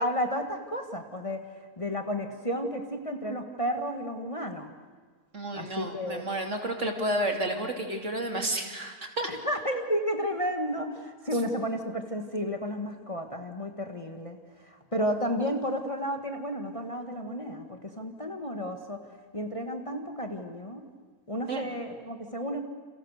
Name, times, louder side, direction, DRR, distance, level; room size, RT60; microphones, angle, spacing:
voice 1, 0.0-4.7 5.5-6.2 9.3-19.0 19.3-20.9 21.3-22.6, equal, 20° left, 4 dB, 1.9 m, -32 dB
voice 2, 5.3-9.3 21.5-21.8, right 1 dB, 50° right, 4 dB, 3.3 m, -31 dB
30.0 x 29.0 x 6.7 m, 1.5 s
omnidirectional pair, 1.6 m